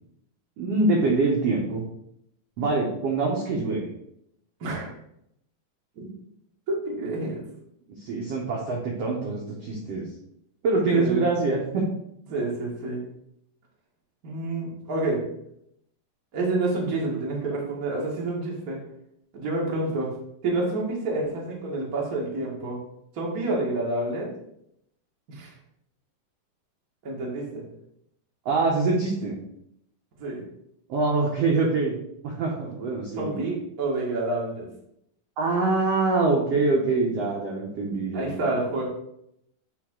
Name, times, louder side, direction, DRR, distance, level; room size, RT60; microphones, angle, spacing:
voice 1, 0.6-1.8 2.6-3.9 8.0-10.1 10.6-11.8 28.4-29.4 30.9-32.0 32.2-33.4 35.4-38.5, right 3 dB, 75° right, -2 dB, 1.4 m, -24 dB
voice 2, 4.6-4.9 6.0-6.1 6.7-7.4 10.9-11.3 12.3-13.0 14.2-15.2 16.3-18.8 19.3-20.1 20.4-22.8 23.1-24.3 25.3-25.5 27.0-27.6 30.2-30.4 33.2-34.7 38.1-38.8, right 2 dB, 45° right, -3 dB, 1.1 m, -28 dB
9.7 x 3.4 x 3.7 m, 0.76 s
omnidirectional pair, 4.1 m